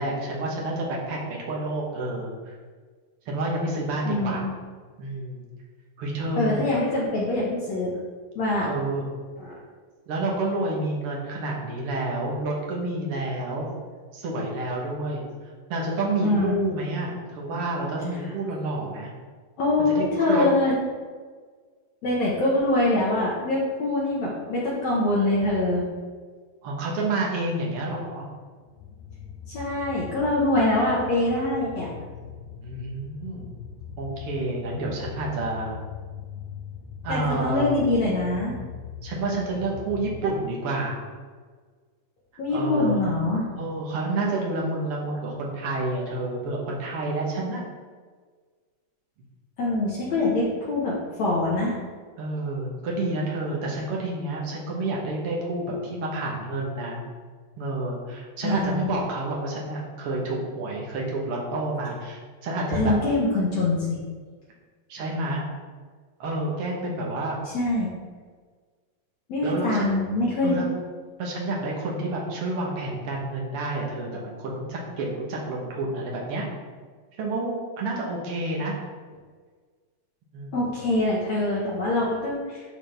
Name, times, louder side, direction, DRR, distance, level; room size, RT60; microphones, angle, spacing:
voice 1, 0.0-2.5 3.3-4.4 5.0-5.4 6.0-6.7 8.6-9.1 10.1-13.7 14.1-15.2 15.7-19.1 19.9-20.5 26.6-28.2 32.6-33.5 34.0-35.8 37.0-37.8 39.0-41.1 42.5-43.0 43.6-47.6 52.2-57.0 57.6-62.9 64.9-65.4 66.2-67.4 69.4-70.0 70.4-70.7 71.2-76.4 77.2-78.7 80.3-80.5, right 2 dB, 65° right, -2 dB, 1.5 m, -29 dB
voice 2, 4.1-4.5 6.4-7.9 8.4-8.7 9.4-9.6 16.2-16.6 19.6-20.7 22.0-25.9 29.5-31.9 37.1-38.5 42.4-43.4 49.6-51.8 58.4-58.9 62.7-64.0 67.5-67.9 69.3-70.6 80.5-82.7, left 2 dB, 65° left, -6 dB, 2.0 m, -24 dB
sound 1, 28.7-40.3, left 7 dB, 85° left, 1.6 m, -40 dB
11.5 x 4.0 x 3.4 m, 1.5 s
omnidirectional pair, 4.1 m